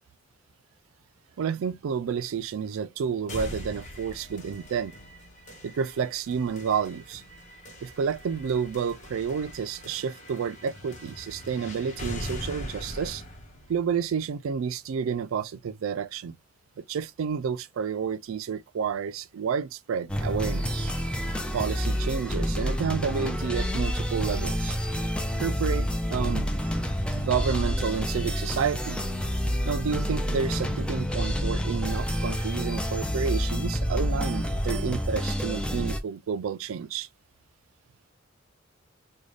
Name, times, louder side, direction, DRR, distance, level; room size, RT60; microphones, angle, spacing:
voice 1, 1.4-5.0 5.6-7.2 7.8-13.2 13.7-16.4 16.8-20.9 21.5-24.8 25.4-26.5 27.1-29.0 29.6-37.1, right 6 dB, 75° right, 0.4 m, -30 dB
sound 1, 3.3-15.2, equal, 40° left, 1.0 m, -42 dB
sound 2, 20.1-36.0, equal, 5° left, 0.5 m, -28 dB
3.9 x 2.2 x 3.2 m
head